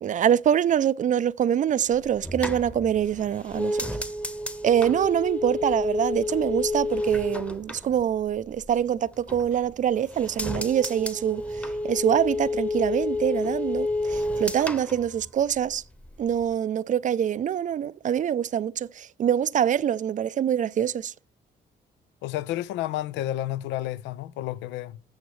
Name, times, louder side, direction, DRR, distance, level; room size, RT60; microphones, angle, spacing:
voice 1, 0.0-3.8 4.6-11.4 11.8-15.8 16.2-21.1, right 9 dB, 45° right, 0.4 m, -24 dB
sound 1, 1.9-8.7 9.1-9.8 10.1-15.8 16.0-16.5, left 2 dB, 5° left, 1.0 m, -30 dB
voice 2, 22.2-25.0, left 14 dB, 90° left, 0.4 m, -31 dB
15.0 x 6.4 x 3.1 m
supercardioid pair, 70°, 18 cm